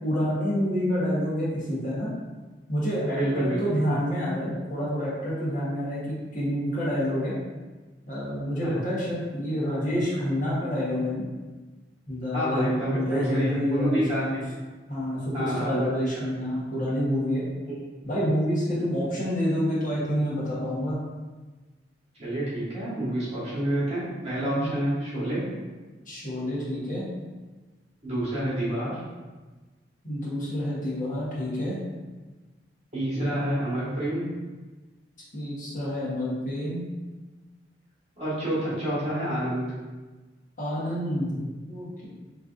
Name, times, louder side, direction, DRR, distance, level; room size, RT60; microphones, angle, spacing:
voice 1, 0.0-2.1 2.7-7.3 8.1-11.3 12.1-14.4 14.9-17.4 18.0-21.0 24.4-24.7 26.1-27.0 30.0-31.8 35.3-36.8 40.6-41.4 41.7-42.1, equal, 45° left, -8 dB, 1.2 m, -28 dB
voice 2, 3.1-4.0 8.6-8.8 12.3-14.4 15.3-16.1 16.4-16.5 17.7-17.8 22.2-25.5 28.0-29.0 32.9-34.3 38.2-39.7, right 1 dB, 35° right, -10 dB, 1.4 m, -28 dB
3.8 x 3.2 x 2.5 m, 1.3 s
head